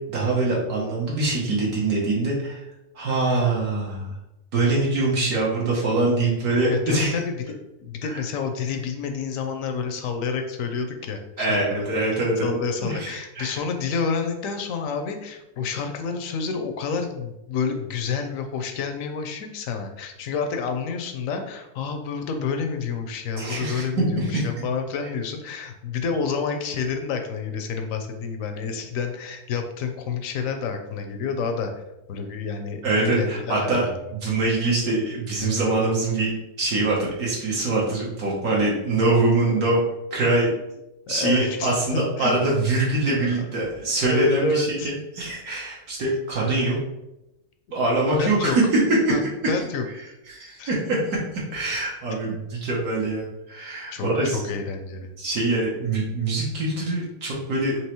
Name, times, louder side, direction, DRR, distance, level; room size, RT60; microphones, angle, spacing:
voice 1, 0.1-2.6 2.9-4.1 4.5-7.2 11.4-13.6 23.4-24.4 32.8-33.9 34.1-39.8 40.1-40.5 41.1-46.8 47.7-48.6 49.1-49.2 50.3-51.2 51.5-54.4 55.2-57.8, right 2 dB, 70° right, -4 dB, 1.4 m, -24 dB
voice 2, 6.7-31.8 32.1-34.1 41.1-42.5 43.1-43.5 44.0-44.9 47.7-47.8 48.2-48.6 49.1-49.8 50.6-50.7 52.1-52.4 53.9-55.1, left 5 dB, 70° left, 6 dB, 0.9 m, -29 dB
4.6 x 2.9 x 3.0 m, 0.91 s
omnidirectional pair, 1.7 m